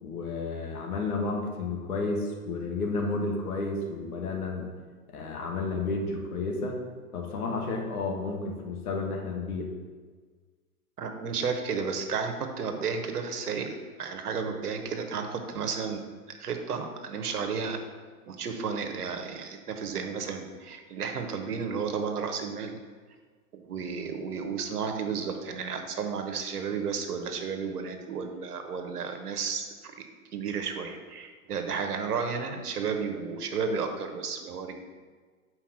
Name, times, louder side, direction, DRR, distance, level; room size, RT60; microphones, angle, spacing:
voice 1, 0.0-4.7 5.1-6.8 7.1-9.7, left 3 dB, 70° left, 1 dB, 1.6 m, -31 dB
voice 2, 11.0-16.0 16.3-17.8 18.3-22.8 23.5-30.1 30.3-34.8, right 5 dB, 80° right, 5 dB, 1.1 m, -33 dB
5.8 x 4.7 x 6.0 m, 1.5 s
hypercardioid pair, 110°, 45 cm